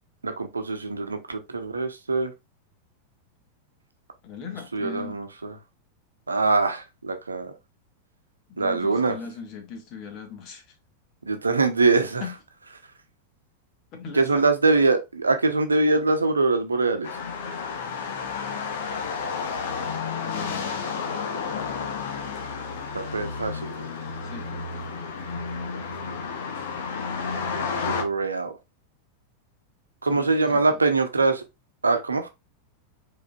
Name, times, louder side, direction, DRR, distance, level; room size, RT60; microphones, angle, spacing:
voice 1, 0.2-2.3 4.7-5.5 6.3-7.5 8.6-9.2 11.3-12.2 14.1-17.1 22.9-23.9 27.8-28.6 30.0-31.4 31.8-32.3, right 3 dB, 75° right, 0.8 m, -23 dB
voice 2, 4.2-5.2 8.5-10.6 12.2-12.3 13.9-14.5 20.2-21.0 24.2-24.5 30.0-30.8, left 5 dB, 40° left, 1.7 m, -39 dB
sound 1, 17.0-28.0, left 5 dB, 55° left, 1.1 m, -31 dB
5.0 x 4.2 x 2.5 m
figure-of-eight pair, 90°, 0 cm